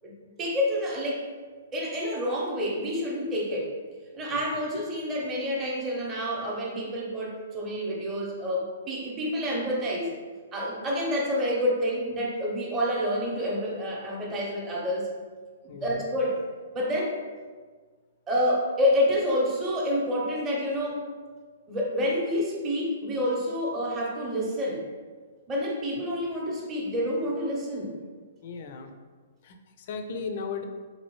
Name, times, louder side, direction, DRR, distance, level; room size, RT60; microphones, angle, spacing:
voice 1, 0.4-1.3 1.7-3.7 4.1-10.2 10.5-15.1 15.6-16.4 16.7-17.2 18.3-21.0 21.7-24.9 25.5-28.0, equal, 20° right, -4 dB, 0.7 m, -28 dB
voice 2, 15.7-16.0 28.4-28.9 29.4-30.6, left 5 dB, 50° left, 6 dB, 0.4 m, -36 dB
2.8 x 2.6 x 3.0 m, 1.5 s
figure-of-eight pair, 120°, 0 cm